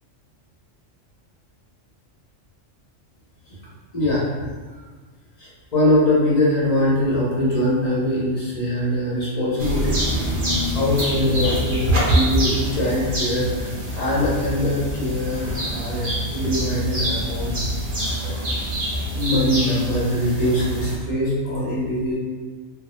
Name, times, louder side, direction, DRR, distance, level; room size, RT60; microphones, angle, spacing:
voice 1, 3.9-4.3 4.7-4.8 5.4-10.0 10.6-17.6 18.2-18.4 19.1-22.1, left 1 dB, 40° left, -8 dB, 0.7 m, -22 dB
sound 1, 9.6-21.0, equal, 50° right, 0.7 m, -25 dB
2.2 x 2.0 x 2.9 m, 1.4 s
omnidirectional pair, 1.3 m